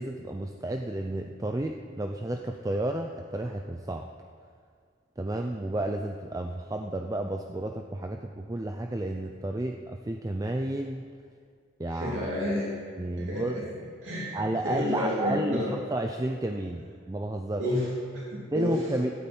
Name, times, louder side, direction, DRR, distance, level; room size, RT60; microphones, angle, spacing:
voice 1, 0.0-4.1 5.2-11.0 11.8-12.3 13.0-13.6 14.3-17.6 18.5-19.1, right 1 dB, 15° right, 4 dB, 0.5 m, -31 dB
voice 2, 11.9-12.7 13.1-13.6 14.0-14.3 14.6-15.7 17.6-17.9 18.1-18.8, left 1 dB, 80° right, -6 dB, 3.0 m, -30 dB
17.0 x 12.0 x 4.4 m, 2.1 s
head